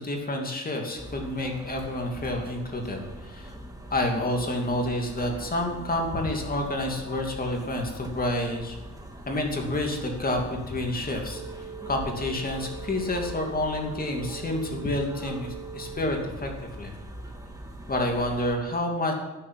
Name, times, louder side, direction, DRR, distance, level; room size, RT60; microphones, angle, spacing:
voice 1, 0.0-3.5 3.9-8.8 9.3-11.4 11.9-16.5 16.8-16.9 17.9-19.1, left 1 dB, 30° left, 2 dB, 2.7 m, -29 dB
sound 1, 1.0-18.6, right 1 dB, 10° right, 2.1 m, -42 dB
sound 2, 11.2-16.2, right 7 dB, 65° right, 1.3 m, -42 dB
12.0 x 7.5 x 9.4 m, 1.1 s
cardioid pair, 90°, 30 cm